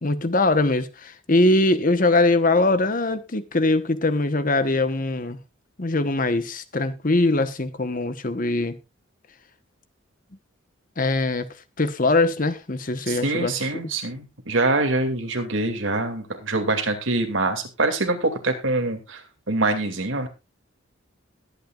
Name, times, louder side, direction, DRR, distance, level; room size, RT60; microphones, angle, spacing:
voice 1, 0.0-5.4 5.8-8.8 11.0-11.5 11.8-13.6, left 2 dB, 40° left, 1.1 m, -22 dB
voice 2, 13.1-19.2 19.5-20.3, right 2 dB, 70° right, 2.5 m, -24 dB
21.0 x 8.8 x 2.5 m
head